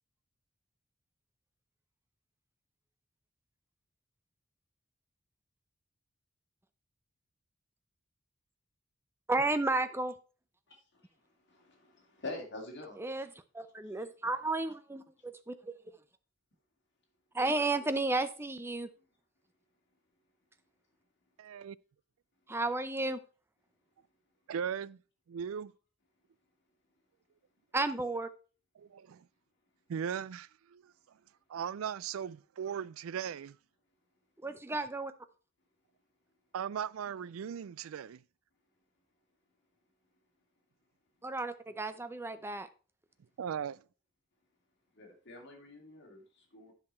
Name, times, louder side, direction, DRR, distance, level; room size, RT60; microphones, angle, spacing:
voice 1, 9.3-10.1 13.0-13.3 13.5-15.7 17.3-18.9 22.5-23.2 27.7-28.3 34.4-35.1 41.2-42.7, right 2 dB, 10° right, 0.6 m, -33 dB
voice 2, 11.5-13.0 17.4-17.6 45.0-46.7, left 2 dB, 55° left, 2.5 m, -45 dB
voice 3, 21.4-21.8 24.5-25.0 25.3-25.7 28.8-29.3 29.9-30.9 31.5-33.6 36.5-38.2 43.4-43.8, right 8 dB, 90° right, 0.4 m, -38 dB
9.9 x 5.8 x 4.3 m
head